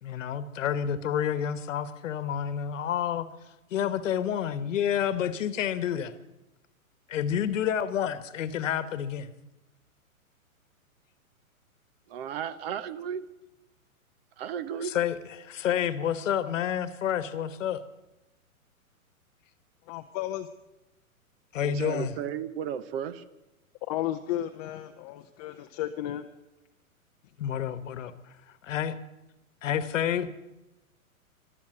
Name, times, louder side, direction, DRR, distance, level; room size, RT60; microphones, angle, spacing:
voice 1, 0.0-3.3 3.7-6.1 7.1-9.3 14.8-17.8 21.5-22.1 27.4-28.1 28.6-29.0 29.6-30.3, left 9 dB, 60° left, 14 dB, 1.2 m, -29 dB
voice 2, 12.1-13.2 14.4-14.9 21.6-23.2, right 9 dB, 45° right, 15 dB, 0.9 m, -34 dB
voice 3, 19.9-20.5 23.9-25.1 25.4-26.2, left 13 dB, 30° left, 7 dB, 0.6 m, -33 dB
14.5 x 12.0 x 7.8 m, 0.98 s
hypercardioid pair, 125°, 43 cm